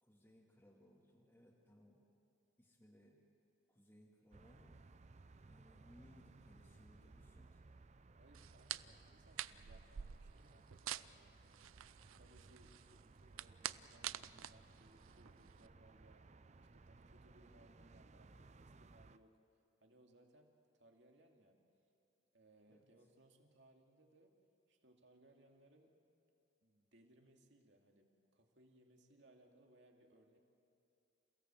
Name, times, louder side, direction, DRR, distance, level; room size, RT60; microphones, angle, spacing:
voice 1, 0.0-2.0 2.6-3.2 3.7-4.8 5.5-7.7 22.7-22.9, equal, 10° left, -4 dB, 2.0 m, -65 dB
sound 1, 4.3-19.2, right 3 dB, 35° right, 0.5 m, -62 dB
voice 2, 8.1-16.3 16.7-19.4 19.8-21.6 22.3-24.3 24.7-25.9 26.6-30.4, right 1 dB, 60° right, 2 dB, 2.5 m, -68 dB
sound 2, 8.3-15.7, right 11 dB, 90° right, 0.5 m, -49 dB
28.5 x 17.0 x 7.6 m, 2.9 s
head